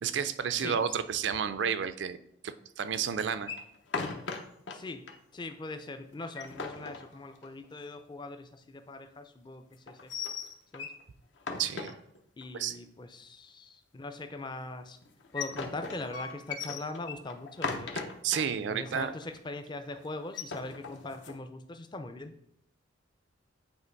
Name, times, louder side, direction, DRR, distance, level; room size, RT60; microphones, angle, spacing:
voice 1, 0.0-2.2 2.4-3.5 11.6-11.9 12.5-12.8 18.2-19.1, right 7 dB, 65° right, 12 dB, 0.4 m, -31 dB
sound 1, 3.4-4.8 5.1-5.2 5.5-5.6 6.1-7.6 9.9-11.0 11.4-12.4 15.0-18.4 18.9-19.0 19.2-19.6 20.2-21.4, left 4 dB, 65° left, 0.7 m, -38 dB
voice 2, 4.7-5.0 5.3-10.1 10.7-10.9 12.4-15.0 15.3-18.1 18.7-22.3, left 2 dB, 25° left, 8 dB, 0.5 m, -41 dB
8.3 x 3.0 x 4.5 m, 0.71 s
head